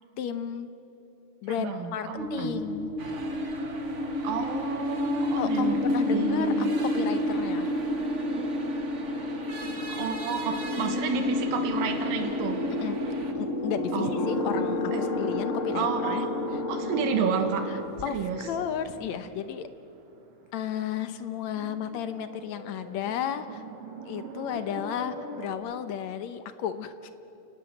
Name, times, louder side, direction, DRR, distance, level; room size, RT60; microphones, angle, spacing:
voice 1, 0.2-0.7 1.4-2.9 5.4-7.7 12.8-13.0 13.3-16.2 18.0-19.7 20.5-23.6 24.1-27.1, left 9 dB, 70° left, 10 dB, 1.9 m, -33 dB
voice 2, 1.5-2.6 4.2-5.8 6.1-6.7 9.9-12.6 13.9-14.2 14.9-15.0 15.7-16.3 16.7-17.7 18.1-18.5, right 6 dB, 85° right, 5 dB, 3.3 m, -31 dB
sound 1, 2.2-19.1, left 1 dB, 55° left, 0.8 m, -30 dB
sound 2, 3.0-13.3, right 3 dB, 50° right, 0.8 m, -43 dB
sound 3, 6.1-25.5, right 2 dB, 70° right, 3.4 m, -44 dB
29.5 x 19.0 x 7.8 m, 2.8 s
omnidirectional pair, 3.9 m